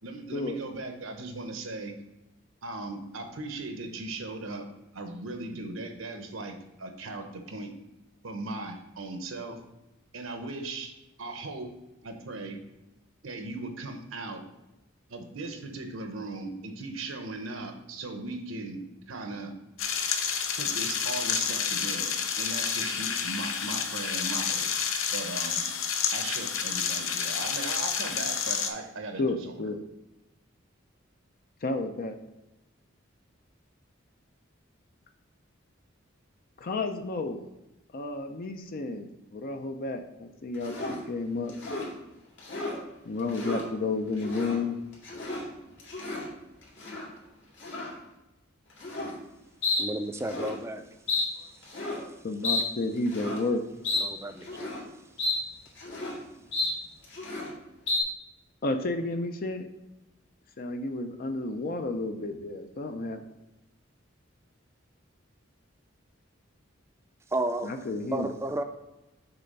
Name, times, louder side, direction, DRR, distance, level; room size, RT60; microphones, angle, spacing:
voice 1, 0.0-1.9 2.6-4.7 4.9-7.7 8.2-9.6 10.1-10.9 11.2-11.7 12.0-12.6 13.2-14.4 15.1-18.8 19.1-19.5 20.6-24.7 25.1-25.6 26.1-29.6, right 2 dB, 85° right, 6 dB, 0.9 m, -38 dB
sound 1, 19.8-28.7, left 7 dB, 80° left, 0.7 m, -29 dB
voice 2, 29.2-29.8 31.6-32.2 36.6-37.5 37.9-41.5 43.0-44.8 52.2-53.6 58.6-59.6 60.6-63.2 67.6-68.3, left 2 dB, 45° left, 6 dB, 0.5 m, -31 dB
sound 2, 40.6-41.0 41.5-41.9 42.4-42.8 43.2-43.6 44.1-44.6 44.9-45.4 45.8-46.3 46.8-47.1 47.6-47.9 48.8-49.2 49.6-49.8 50.1-50.6 51.1-51.2 51.6-52.0 52.4-52.6 53.1-53.4 53.8-54.0 54.4-54.8 55.2-55.4 55.7-56.2 56.5-56.7 57.0-57.5 57.9-58.0, left 3 dB, 65° left, 2.1 m, -31 dB
voice 3, 49.8-50.8 53.9-54.6 67.3-67.7 68.1-68.6, right 1 dB, 15° right, 7 dB, 0.5 m, -32 dB
6.9 x 3.4 x 5.4 m, 0.98 s
head